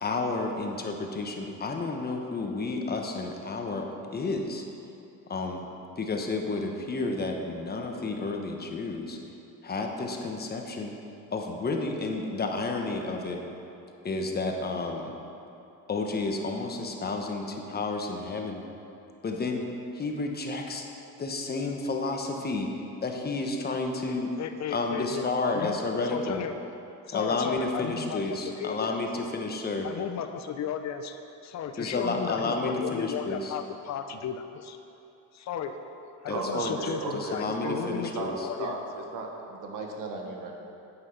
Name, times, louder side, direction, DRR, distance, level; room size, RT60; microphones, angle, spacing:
voice 1, 0.0-3.9 4.1-4.6 5.3-5.7 6.0-9.2 9.6-10.9 11.3-13.4 14.0-15.1 15.9-18.6 19.2-19.7 19.9-20.9 21.2-22.7 23.0-24.3 24.7-26.4 27.1-29.9 31.8-33.5 36.3-38.5, left 3 dB, 30° left, 2 dB, 1.2 m, -31 dB
voice 2, 24.4-25.8 26.0-26.6 27.1-29.0 29.8-34.8 35.3-35.8 36.2-38.8, left 7 dB, 55° left, 8 dB, 0.7 m, -35 dB
voice 3, 36.3-40.6, right 3 dB, 65° right, 1 dB, 1.6 m, -35 dB
8.9 x 8.7 x 5.8 m, 2.8 s
cardioid pair, 120°, 34 cm